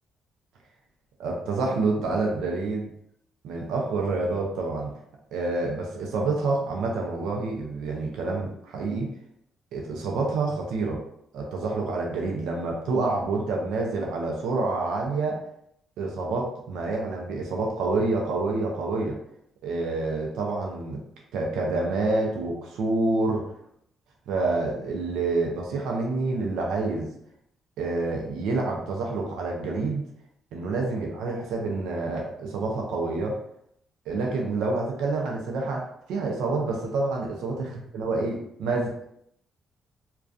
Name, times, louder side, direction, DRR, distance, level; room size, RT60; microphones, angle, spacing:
voice 1, 1.2-2.9 3.4-4.9 5.3-9.1 9.7-11.0 11.3-15.4 16.0-19.2 19.6-21.0 21.3-23.4 24.3-27.1 27.8-30.0 30.5-33.4 34.1-37.7 37.9-38.9, right 3 dB, 90° right, 0 dB, 0.4 m, -27 dB
2.3 x 2.2 x 2.5 m, 0.72 s
cardioid pair, 90°, 0 cm